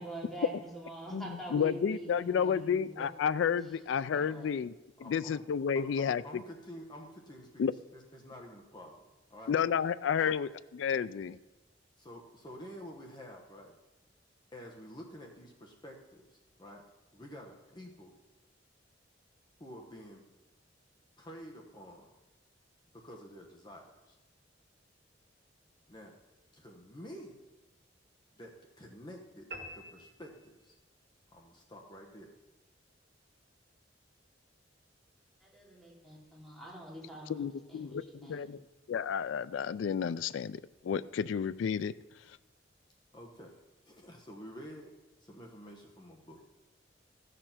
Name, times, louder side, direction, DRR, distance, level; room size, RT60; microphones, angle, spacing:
voice 1, 0.0-3.1 3.7-3.8 4.1-4.5 35.4-38.5, right 1 dB, ahead, -4 dB, 3.1 m, -45 dB
voice 2, 1.5-4.7 5.0-6.2 7.6-7.7 9.5-10.5 10.8-11.4 37.3-38.6 38.9-41.9, left 7 dB, 80° left, 16 dB, 0.3 m, -31 dB
voice 3, 5.0-5.4 5.7-9.0 9.3-9.5 10.2-10.3 12.0-13.7 14.5-16.8 17.1-18.1 19.6-20.3 21.2-22.1 22.9-24.2 25.9-26.2 26.5-27.4 28.3-29.5 29.7-30.8 31.3-32.3 43.1-44.9 45.2-46.4, equal, 25° left, 1 dB, 1.1 m, -49 dB
sound 1, 29.5-31.0, equal, 60° right, 2.0 m, -47 dB
14.5 x 6.8 x 5.8 m, 1.1 s
head